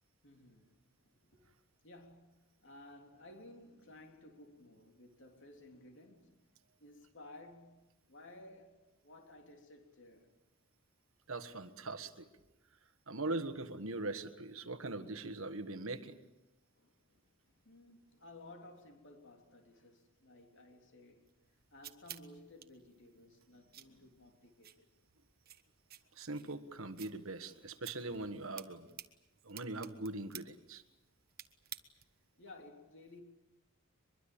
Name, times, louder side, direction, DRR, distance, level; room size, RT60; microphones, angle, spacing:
voice 1, 0.2-0.8 1.2-1.5 1.8-6.3 6.8-10.3 16.7-21.3 21.7-24.9 27.4-27.7 32.4-33.2, left 2 dB, 55° left, 3.5 m, -56 dB
voice 2, 11.3-12.3 13.1-16.2 26.2-28.9 29.4-30.8, right 2 dB, 65° right, 1.5 m, -41 dB
sound 1, 21.2-32.3, right 12 dB, 45° right, 1.3 m, -55 dB
23.0 x 23.0 x 8.8 m
head